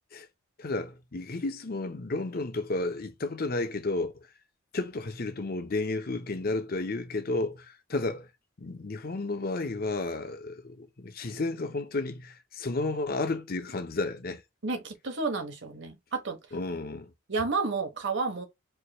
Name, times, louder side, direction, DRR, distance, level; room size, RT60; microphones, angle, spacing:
voice 1, 0.6-4.3 4.7-8.3 8.6-14.4 16.5-17.1, left 2 dB, 45° left, 0.7 m, -32 dB
voice 2, 14.6-16.4 17.3-18.4, right 4 dB, 55° right, 1.1 m, -31 dB
4.6 x 3.0 x 2.2 m
head